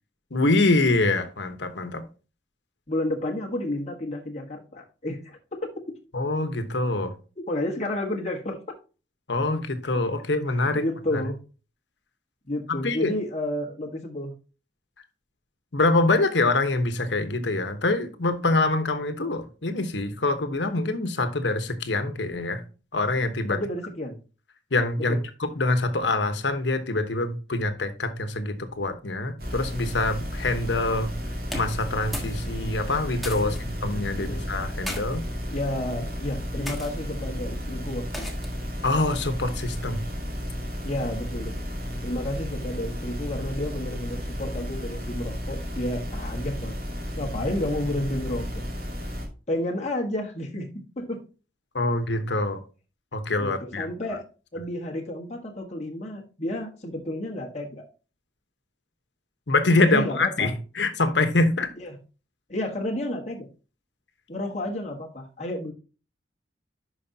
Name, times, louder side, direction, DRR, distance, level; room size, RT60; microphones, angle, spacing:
voice 1, 0.3-2.0 6.1-7.1 9.3-10.8 11.1-11.2 12.7-13.1 15.7-22.6 22.9-23.6 24.7-25.2 25.6-31.1 31.5-35.2 38.8-40.0 51.7-52.6 53.1-53.9 59.5-61.7, left 2 dB, 80° left, 1.1 m, -25 dB
voice 2, 2.9-5.9 7.5-8.8 10.7-11.4 12.4-14.3 23.5-24.2 25.0-25.2 33.4-33.6 34.1-34.5 35.5-38.3 39.8-39.9 40.8-41.5 42.0-46.8 47.2-48.5 49.5-51.2 53.4-54.2 54.5-57.8 59.9-60.5 61.8-62.0 62.5-63.5 64.3-65.7, left 1 dB, 40° left, 1.4 m, -31 dB
sound 1, 29.4-49.3, equal, 60° right, 2.4 m, -33 dB
sound 2, 31.4-32.4 32.7-33.6 34.5-35.0 35.8-36.1 36.6-36.9 38.1-38.6, left 1 dB, ahead, 1.4 m, -36 dB
11.0 x 5.1 x 2.8 m
head